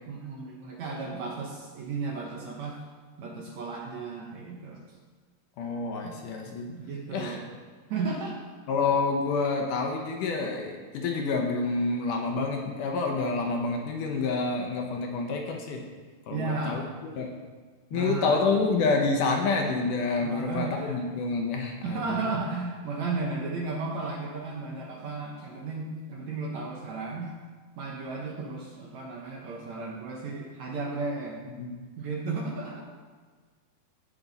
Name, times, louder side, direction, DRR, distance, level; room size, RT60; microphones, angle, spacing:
voice 1, 0.1-2.8 3.2-4.8 6.0-6.2 6.6-7.4 7.9-8.4 16.3-16.9 17.9-18.4 20.2-21.0 21.8-27.3 27.8-31.4 32.0-32.8, right 3 dB, 70° right, -1 dB, 1.9 m, -34 dB
voice 2, 5.6-6.7 7.1-7.4 8.7-15.8 16.3-16.8 17.2-17.3 17.9-22.2 31.6-31.8, left 4 dB, 70° left, 2 dB, 2.3 m, -28 dB
16.5 x 6.0 x 4.0 m, 1.5 s
omnidirectional pair, 4.2 m